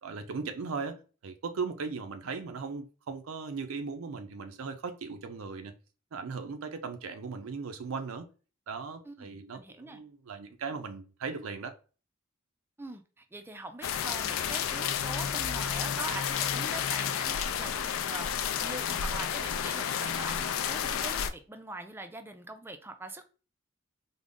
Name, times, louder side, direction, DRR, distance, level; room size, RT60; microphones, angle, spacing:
voice 1, 0.0-5.8 6.1-8.3 8.7-11.7, right 4 dB, 90° right, 0.5 m, -38 dB
voice 2, 9.0-10.0 12.8-18.3 18.6-23.3, right 2 dB, 10° right, 0.3 m, -43 dB
sound 1, 13.8-21.3, left 8 dB, 80° left, 0.4 m, -31 dB
3.7 x 2.0 x 3.5 m
head